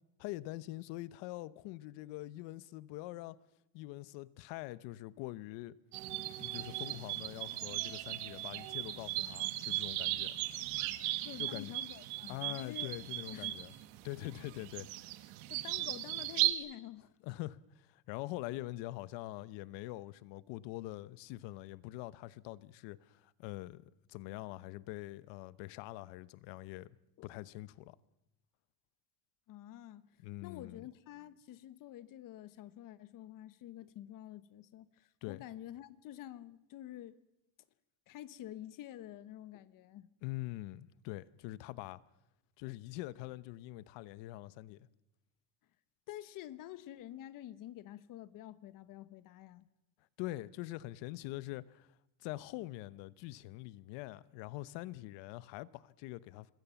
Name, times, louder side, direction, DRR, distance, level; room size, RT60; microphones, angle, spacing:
voice 1, 0.2-3.4 3.7-5.7 6.4-10.4 11.4-11.7 12.3-13.7 14.0-14.9 17.2-27.0 27.2-28.0 30.2-30.8 35.2-35.4 40.2-42.0 42.6-44.9 50.2-51.9 52.2-56.5, left 18 dB, 70° left, 1.0 m, -44 dB
sound 1, 5.9-16.5, right 17 dB, 80° right, 1.8 m, -37 dB
voice 2, 11.2-13.0 13.3-13.6 15.5-17.1 27.2-27.3 29.5-30.0 30.4-37.1 38.1-40.1 46.1-49.7, left 13 dB, 45° left, 1.2 m, -49 dB
26.5 x 21.0 x 7.1 m
cardioid pair, 160°, 44 cm